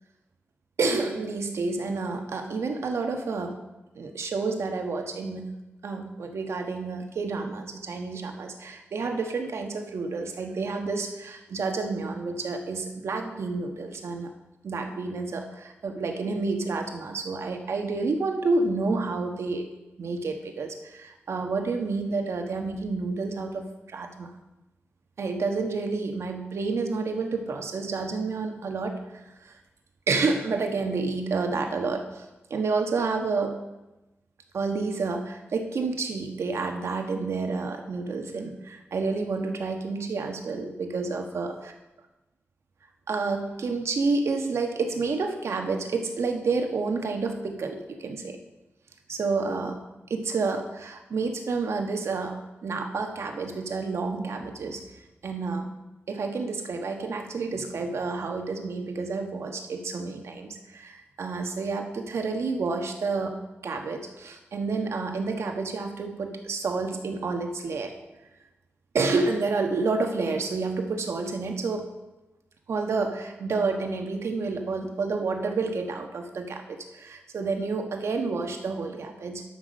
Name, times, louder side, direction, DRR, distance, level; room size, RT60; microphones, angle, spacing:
voice 1, 0.8-3.6 3.9-5.5 5.8-14.3 14.6-19.7 20.0-24.3 25.2-29.0 29.4-29.5 30.1-33.6 34.5-41.5 43.1-48.4 49.1-49.8 50.1-54.8 55.2-55.7 56.1-63.4 63.6-67.9 68.9-71.9 72.7-79.4, right 4 dB, 80° right, 4 dB, 1.3 m, -29 dB
12.0 x 6.0 x 6.4 m, 1.0 s
wide cardioid pair, 145°, 5 cm